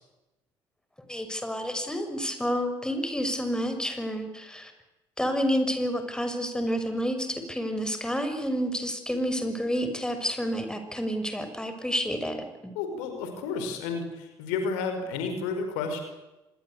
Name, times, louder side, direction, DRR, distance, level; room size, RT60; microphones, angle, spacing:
voice 1, 1.1-4.7 5.2-12.4 12.6-12.7, equal, 5° left, 7 dB, 6.0 m, -29 dB
voice 2, 12.7-16.0, left 4 dB, 70° left, 6 dB, 5.0 m, -31 dB
26.0 x 21.5 x 8.4 m, 1.0 s
figure-of-eight pair, 50°, 13 cm